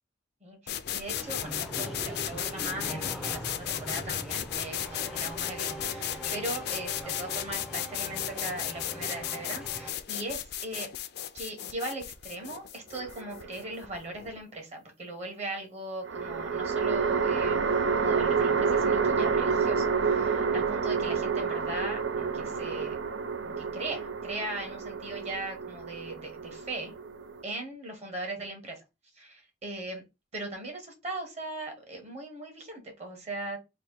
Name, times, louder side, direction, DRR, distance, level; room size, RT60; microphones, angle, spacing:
voice 1, 0.4-10.9 11.3-17.6 18.0-23.0 23.4-26.9 27.4-28.8 29.2-30.0 30.3-33.6, right 2 dB, 40° right, 3 dB, 1.4 m, -39 dB
sound 1, 0.7-14.4, left 10 dB, 60° left, 0.5 m, -35 dB
sound 2, 1.1-9.9, equal, 5° right, 0.5 m, -41 dB
sound 3, 12.9-13.8 16.1-27.4, right 5 dB, 70° right, 0.4 m, -29 dB
3.3 x 2.6 x 4.4 m, 0.25 s
head